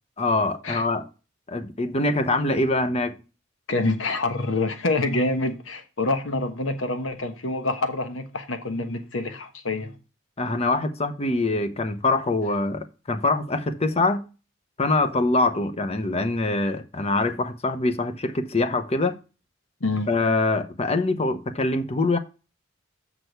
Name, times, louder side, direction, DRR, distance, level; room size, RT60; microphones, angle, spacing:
voice 1, 0.2-1.1 1.5-3.2 10.4-14.3 14.8-19.2 20.1-22.2, left 2 dB, 30° left, 0.8 m, -24 dB
voice 2, 3.7-10.0 19.8-20.1, left 2 dB, 75° left, 1.3 m, -26 dB
6.8 x 6.2 x 4.6 m
head